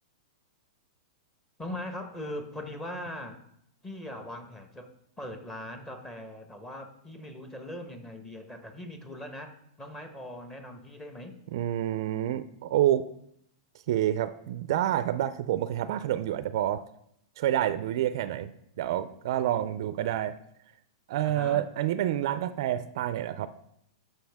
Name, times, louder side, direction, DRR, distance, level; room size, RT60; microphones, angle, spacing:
voice 1, 1.6-3.4 3.8-4.9 5.2-11.4 21.2-21.7, left 1 dB, 10° left, 6 dB, 1.1 m, -40 dB
voice 2, 11.5-13.0 13.9-16.8 17.4-18.5 18.8-20.4 21.1-23.5, right 12 dB, 60° right, 14 dB, 0.4 m, -28 dB
13.0 x 5.6 x 3.5 m, 0.74 s
hypercardioid pair, 145°, 3 cm